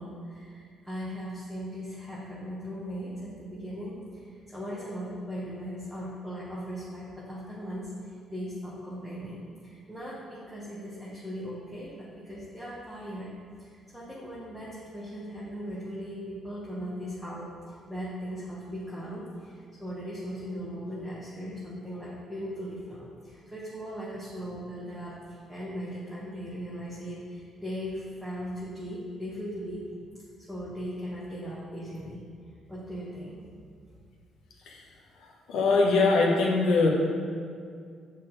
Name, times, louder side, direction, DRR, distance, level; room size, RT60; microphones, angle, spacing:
voice 1, 0.0-13.3 13.6-29.8 30.4-32.2 32.7-33.4, equal, ahead, -8 dB, 0.9 m, -38 dB
voice 2, 35.5-36.9, left 3 dB, 75° left, -1 dB, 0.9 m, -22 dB
8.3 x 4.3 x 3.8 m, 2.2 s
cardioid pair, 165°, 0 cm